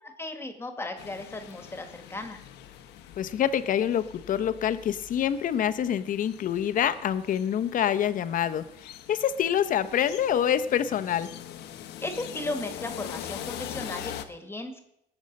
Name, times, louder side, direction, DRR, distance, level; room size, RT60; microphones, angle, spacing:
voice 1, 0.0-2.4 12.0-14.8, left 2 dB, 15° left, 6 dB, 1.7 m, -36 dB
sound 1, 1.0-14.2, left 11 dB, 85° left, 1.0 m, -43 dB
voice 2, 3.2-11.3, left 9 dB, 50° left, 12 dB, 0.9 m, -26 dB
18.5 x 7.2 x 5.3 m, 0.79 s
cardioid pair, 110°, 17 cm